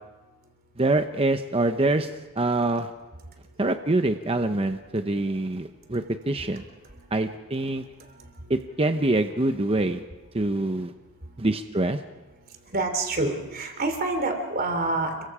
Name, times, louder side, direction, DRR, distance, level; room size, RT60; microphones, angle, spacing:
voice 1, 0.8-2.1 2.4-2.9 3.6-6.6 7.1-7.8 8.5-10.0 10.3-10.9 11.4-12.0, right 2 dB, 25° right, 7 dB, 0.8 m, -25 dB
voice 2, 12.7-15.2, right 2 dB, 40° right, 5 dB, 3.3 m, -27 dB
29.5 x 23.0 x 4.9 m, 1.2 s
head